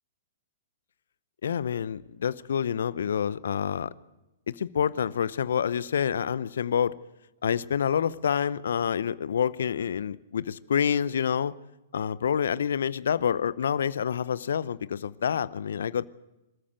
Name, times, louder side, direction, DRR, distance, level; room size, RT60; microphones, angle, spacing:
voice 1, 1.4-3.9 4.5-7.0 7.4-11.5 11.9-16.1, left 8 dB, 65° left, 19 dB, 0.7 m, -27 dB
25.5 x 14.0 x 7.9 m, 0.97 s
figure-of-eight pair, 115°, 0 cm